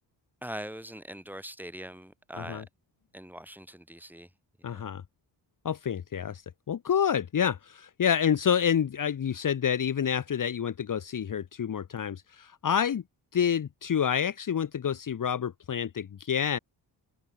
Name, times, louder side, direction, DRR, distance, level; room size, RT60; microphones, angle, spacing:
voice 1, 0.4-2.6 3.1-4.3 4.6-4.8, right 1 dB, 5° right, 6.0 m, -42 dB
voice 2, 2.3-2.6 4.6-5.0 5.6-6.4 6.7-13.0 13.3-16.6, left 8 dB, 45° left, 1.4 m, -28 dB
open air
cardioid pair, 120°, 44 cm